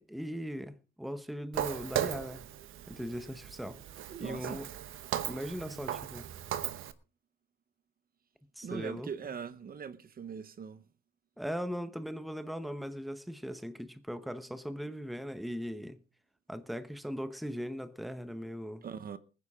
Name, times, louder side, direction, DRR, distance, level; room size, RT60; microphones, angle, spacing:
voice 1, 0.0-2.5 2.9-3.8 4.2-4.6 5.3-6.3 8.6-9.1 11.4-16.0 16.5-18.8, equal, ahead, 1.0 m, -39 dB
Walk footsteps, 1.5-6.9, right 11 dB, 90° right, 1.0 m, -37 dB
voice 2, 4.1-4.6 8.6-10.8 18.8-19.2, right 7 dB, 45° right, 1.0 m, -41 dB
20.0 x 9.8 x 3.6 m
cardioid pair, 115°, 20 cm